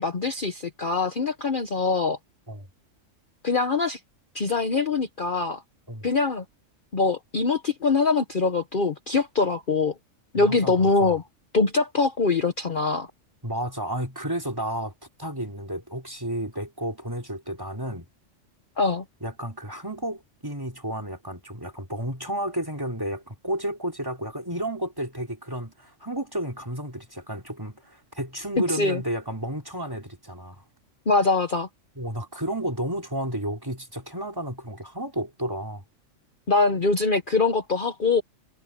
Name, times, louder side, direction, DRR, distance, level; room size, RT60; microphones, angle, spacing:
voice 1, 0.0-2.2 3.4-4.0 4.3-5.6 6.0-6.4 6.9-9.9 10.3-11.2 11.5-13.1 18.8-19.0 28.7-29.0 31.1-31.7 36.5-38.2, left 4 dB, 40° left, 1.2 m, -23 dB
voice 2, 10.3-11.2 13.4-14.9 15.2-18.1 19.2-30.6 32.0-35.8, right 1 dB, 15° right, 3.7 m, -32 dB
omnidirectional pair, 1.4 m